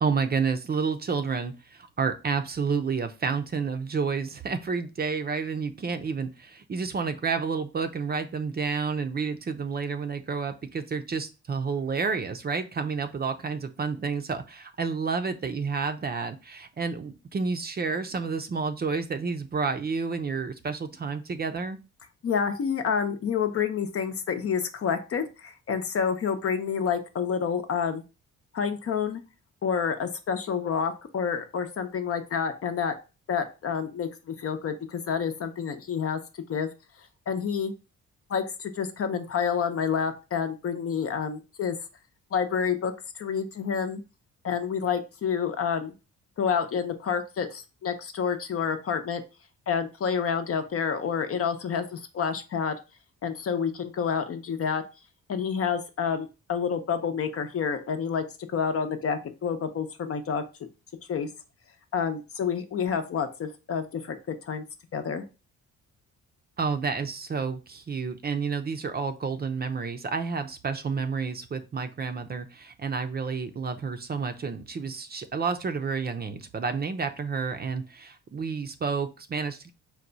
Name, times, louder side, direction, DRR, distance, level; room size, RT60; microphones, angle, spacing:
voice 1, 0.0-21.8 66.6-79.7, right 5 dB, 30° right, 8 dB, 0.6 m, -30 dB
voice 2, 22.2-28.0 28.5-29.2 29.6-32.9 33.3-36.7 37.3-37.7 38.3-41.8 42.3-42.9 43.2-44.0 44.4-45.9 46.4-49.2 49.7-52.8 53.2-54.8 55.3-60.4 61.1-61.3 61.9-64.6 64.9-65.2, left 6 dB, 50° left, 7 dB, 0.7 m, -28 dB
4.7 x 2.3 x 3.9 m, 0.30 s
cardioid pair, 90°, 30 cm